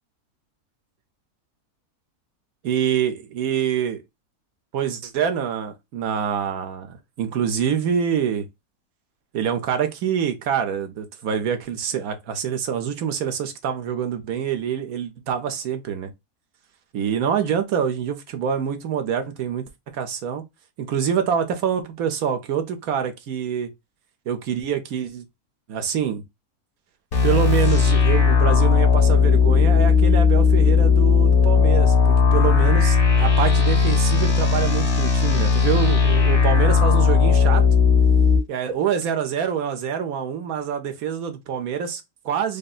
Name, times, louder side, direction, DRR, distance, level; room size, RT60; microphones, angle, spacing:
voice 1, 2.6-4.0 4.7-8.5 9.3-16.1 16.9-20.4 20.8-23.7 24.3-25.2 25.7-26.2 27.2-37.6 38.5-42.6, right 8 dB, 70° right, 1.2 m, -26 dB
sound 1, 27.1-38.4, left 5 dB, 70° left, 2.2 m, -17 dB
5.1 x 2.2 x 2.3 m
omnidirectional pair, 1.6 m